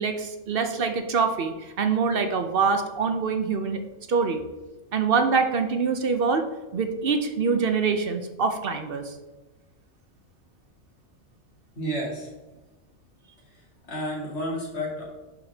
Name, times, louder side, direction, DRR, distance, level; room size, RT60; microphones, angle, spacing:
voice 1, 0.0-3.8 4.1-4.4 4.9-9.1, right 5 dB, 55° right, 6 dB, 0.8 m, -25 dB
voice 2, 11.7-12.3 13.5-15.0, equal, 60° left, -4 dB, 2.4 m, -31 dB
10.5 x 4.0 x 3.4 m, 1.1 s
omnidirectional pair, 1.3 m